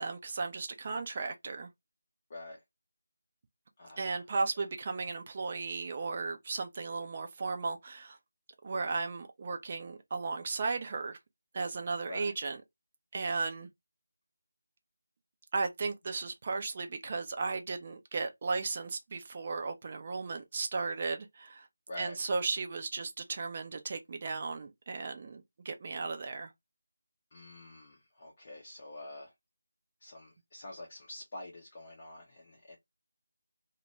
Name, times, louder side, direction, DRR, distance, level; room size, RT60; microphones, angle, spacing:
voice 1, 0.0-1.7 4.0-8.2 8.6-11.2 11.5-12.6 13.1-13.7 15.5-21.7 22.0-26.5, right 4 dB, 30° right, 0.4 m, -35 dB
voice 2, 3.8-4.2 12.1-12.3 21.9-22.2 27.3-29.3 30.0-32.8, left 1 dB, 30° left, 0.5 m, -47 dB
2.2 x 2.1 x 2.9 m
figure-of-eight pair, 160°, 0 cm